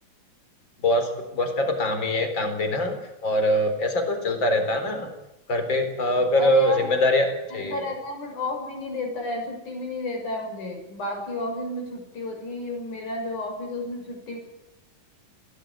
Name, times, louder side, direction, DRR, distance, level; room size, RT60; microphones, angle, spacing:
voice 1, 0.8-3.0 3.2-5.1 5.5-7.8, left 1 dB, 35° left, 7 dB, 4.6 m, -23 dB
voice 2, 6.3-6.9 7.5-14.4, left 2 dB, 60° left, 3 dB, 7.8 m, -32 dB
22.0 x 17.0 x 9.9 m, 0.92 s
omnidirectional pair, 3.9 m